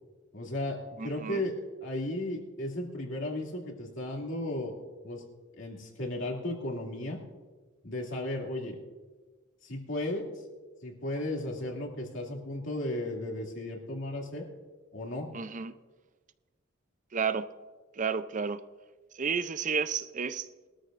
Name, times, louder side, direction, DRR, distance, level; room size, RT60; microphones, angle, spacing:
voice 1, 0.3-1.5 1.8-5.2 5.6-7.2 7.8-8.8 9.6-10.3 10.8-14.5 14.9-15.3, left 1 dB, 70° left, -1 dB, 2.6 m, -35 dB
voice 2, 1.0-1.4 15.3-15.7 17.1-17.5 18.0-18.6 19.1-20.5, right 6 dB, 40° right, 13 dB, 0.5 m, -31 dB
22.0 x 13.0 x 2.5 m, 1.3 s
head